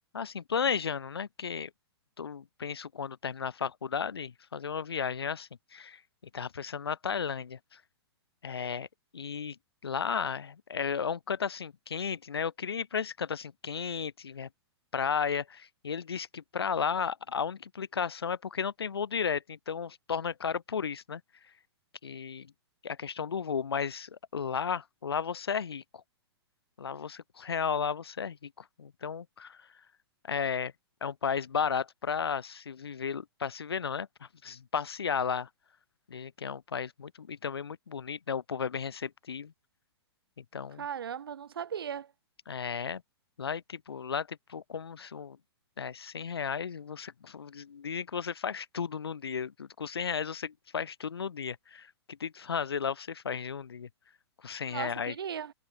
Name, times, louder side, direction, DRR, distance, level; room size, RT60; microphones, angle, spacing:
voice 1, 0.1-1.7 2.2-6.0 6.3-7.8 8.4-8.9 9.1-9.6 9.8-14.5 14.9-21.2 22.0-22.5 22.8-26.0 26.8-29.7 30.2-30.7 31.0-35.5 36.1-39.5 40.4-40.8 42.5-43.0 43.4-45.4 45.8-53.9 54.4-55.1, left 6 dB, 65° left, 1.3 m, -34 dB
voice 2, 40.8-42.1 54.7-55.5, right 8 dB, 60° right, 3.0 m, -37 dB
figure-of-eight pair, 110°, 14 cm